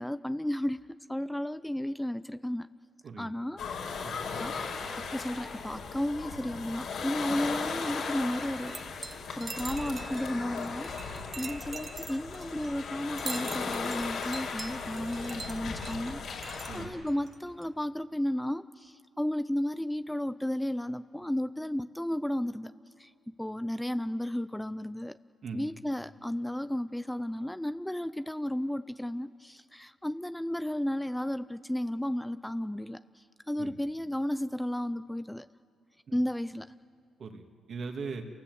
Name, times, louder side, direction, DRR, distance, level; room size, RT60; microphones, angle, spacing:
voice 1, 0.0-2.7 3.2-4.6 4.9-22.7 23.0-23.1 23.4-25.2 25.5-35.5 36.1-36.7, left 1 dB, 5° left, 13 dB, 0.5 m, -33 dB
sound 1, 3.6-16.9, left 5 dB, 70° left, 5.4 m, -37 dB
sound 2, 8.7-10.3 10.6-12.8 13.2-16.8 17.1-17.4 17.6-17.7, right 4 dB, 30° right, 1.1 m, -43 dB
voice 2, 37.2-38.3, right 4 dB, 50° right, 4 dB, 2.4 m, -40 dB
28.0 x 19.0 x 8.0 m, 2.4 s
cardioid pair, 90°, 0 cm